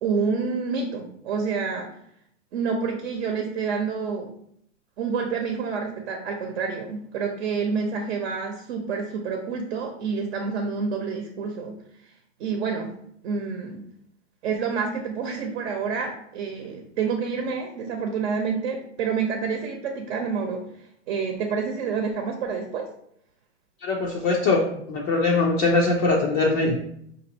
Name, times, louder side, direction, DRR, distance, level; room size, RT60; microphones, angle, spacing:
voice 1, 0.0-1.9 2.5-4.3 5.0-11.7 12.4-12.9 13.2-13.8 14.4-20.6 21.1-22.9, right 5 dB, 60° right, 3 dB, 0.9 m, -28 dB
voice 2, 23.8-24.6 24.9-26.8, left 3 dB, 25° left, -2 dB, 0.3 m, -21 dB
5.2 x 2.6 x 2.8 m, 0.69 s
hypercardioid pair, 130°, 37 cm